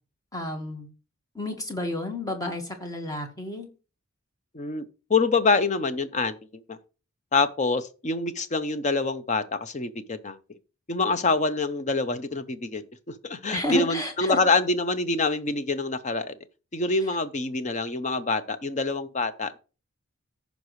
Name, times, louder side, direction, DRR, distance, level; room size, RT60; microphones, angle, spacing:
voice 1, 0.3-0.9 1.3-3.7 13.5-14.4, left 2 dB, 15° left, 1.4 m, -31 dB
voice 2, 5.1-6.4 6.7-6.8 7.3-10.4 10.9-12.8 13.2-16.4 16.7-19.6, left 3 dB, 35° left, 0.6 m, -25 dB
14.5 x 5.3 x 3.1 m
head